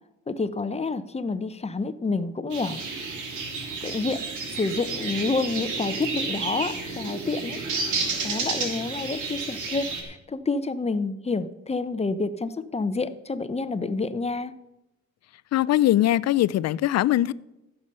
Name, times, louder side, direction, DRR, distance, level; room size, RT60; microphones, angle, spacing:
voice 1, 0.3-2.8 3.6-4.2 4.5-7.6 8.2-14.5, left 3 dB, 20° left, 0.7 m, -28 dB
sound 1, 2.5-10.0, right 4 dB, 80° right, 2.6 m, -31 dB
voice 2, 15.5-17.3, left 14 dB, 60° left, 0.5 m, -21 dB
14.5 x 6.9 x 5.5 m
cardioid pair, 90°, 30 cm